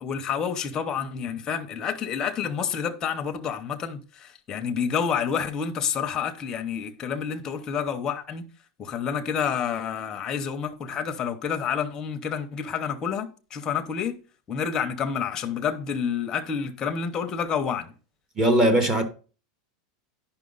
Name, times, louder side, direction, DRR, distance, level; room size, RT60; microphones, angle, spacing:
voice 1, 0.0-4.0 4.5-8.4 8.8-14.1 14.5-17.9, left 7 dB, 15° left, 0.7 m, -29 dB
voice 2, 18.4-19.0, right 1 dB, 15° right, 0.9 m, -19 dB
9.7 x 5.7 x 3.9 m
supercardioid pair, 175°, 4 cm